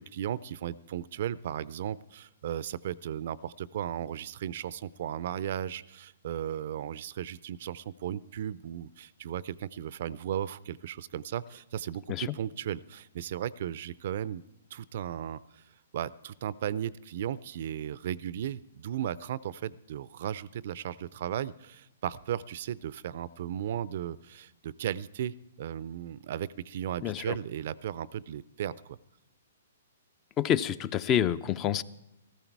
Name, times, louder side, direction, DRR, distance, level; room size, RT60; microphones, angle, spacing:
voice 1, 0.0-14.4 14.7-15.6 15.9-29.0, right 10 dB, 55° right, 20 dB, 0.4 m, -36 dB
voice 2, 27.0-27.3 30.4-31.8, left 10 dB, 25° left, 18 dB, 0.4 m, -27 dB
14.5 x 14.0 x 4.6 m, 0.88 s
hypercardioid pair, 135°, 0 cm